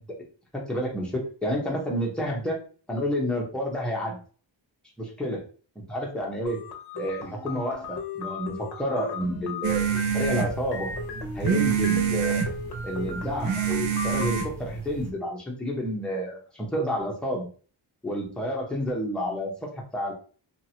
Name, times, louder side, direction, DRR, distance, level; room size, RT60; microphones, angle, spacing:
voice 1, 0.5-2.6 2.9-4.2 5.0-5.4 5.8-6.6 6.9-10.9 11.3-12.5 12.8-17.5 18.0-20.1, equal, ahead, -3 dB, 0.8 m, -30 dB
sound 1, 6.4-14.5, left 4 dB, 55° left, 0.7 m, -37 dB
sound 2, 9.6-15.1, right 8 dB, 75° right, 0.6 m, -27 dB
2.8 x 2.4 x 2.8 m, 0.40 s
wide cardioid pair, 160°, 47 cm